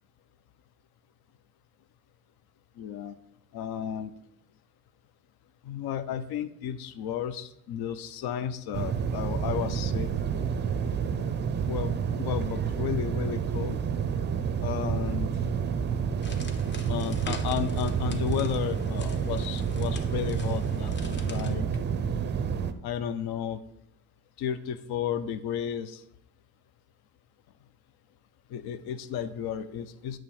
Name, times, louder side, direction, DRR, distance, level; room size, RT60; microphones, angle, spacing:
voice 1, 2.8-3.2 3.5-4.1 5.7-10.1 11.7-11.9 12.2-13.8 14.6-15.3 16.9-21.0 21.3-21.7 22.8-23.6 24.4-26.0 28.5-30.2, left 9 dB, 65° left, 11 dB, 0.6 m, -33 dB
sound 1, 8.7-22.7, right 7 dB, 25° right, 0.4 m, -29 dB
sound 2, 16.2-21.5, left 3 dB, 25° left, 0.8 m, -44 dB
8.6 x 3.1 x 6.4 m, 0.73 s
cardioid pair, 125°, 41 cm